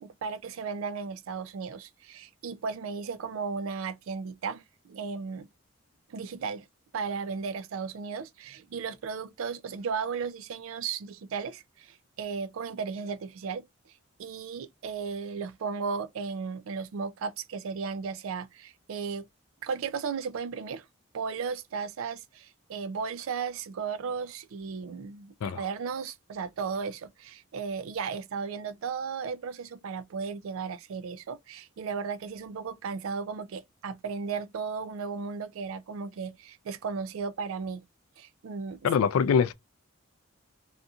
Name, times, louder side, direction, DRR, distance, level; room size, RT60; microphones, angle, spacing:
voice 1, 0.0-5.5 6.1-6.7 6.9-13.6 14.2-19.3 19.6-20.9 21.1-37.8 38.2-38.8, right 5 dB, 75° right, 0.4 m, -35 dB
voice 2, 38.8-39.5, left 6 dB, 80° left, 0.3 m, -23 dB
2.7 x 2.5 x 2.3 m
head